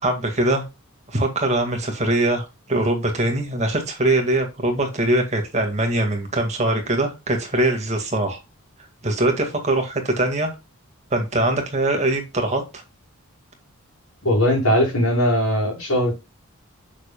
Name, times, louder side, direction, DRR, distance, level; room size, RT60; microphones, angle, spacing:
voice 1, 0.0-0.6 1.1-8.4 9.0-10.5 11.1-12.6, right 1 dB, 30° right, 2.0 m, -22 dB
voice 2, 14.2-16.1, equal, 85° left, 4.6 m, -19 dB
7.1 x 6.5 x 2.3 m
head